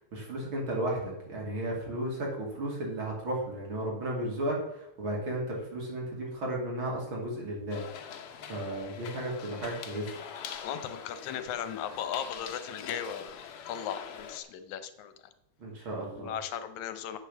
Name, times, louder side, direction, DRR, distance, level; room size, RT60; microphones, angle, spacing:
voice 1, 0.1-7.8 8.5-10.1 15.6-16.3, right 1 dB, 45° right, -2 dB, 3.3 m, -34 dB
sound 1, 7.7-14.4, left 7 dB, 65° left, 1.4 m, -43 dB
voice 2, 10.6-13.4 13.7-15.1 16.2-17.2, left 9 dB, 85° left, 10 dB, 2.2 m, -37 dB
8.2 x 6.9 x 6.8 m, 0.81 s
omnidirectional pair, 3.3 m